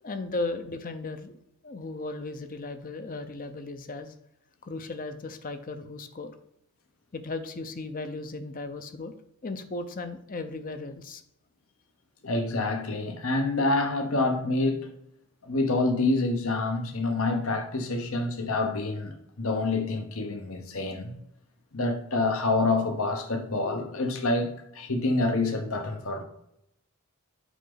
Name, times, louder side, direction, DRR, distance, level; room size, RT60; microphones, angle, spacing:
voice 1, 0.0-1.4 1.6-4.1 4.6-6.3 7.1-9.2 9.4-11.2, left 3 dB, 40° left, 0.6 m, -36 dB
voice 2, 12.2-14.9 15.4-21.1 21.7-26.2, left 2 dB, 65° left, 1.0 m, -27 dB
8.2 x 5.0 x 3.9 m
head